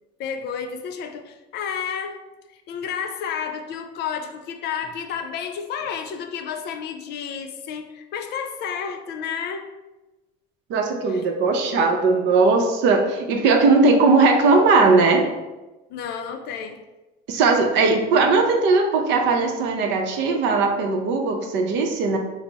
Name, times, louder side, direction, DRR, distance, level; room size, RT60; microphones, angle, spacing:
voice 1, 0.2-2.2 2.5-9.7 11.1-11.3 15.9-16.8, left 7 dB, 55° left, 5 dB, 0.4 m, -31 dB
voice 2, 10.7-15.3 17.3-22.2, right 3 dB, 60° right, 3 dB, 0.6 m, -18 dB
3.3 x 2.0 x 3.9 m, 1.1 s
supercardioid pair, 105°, 21 cm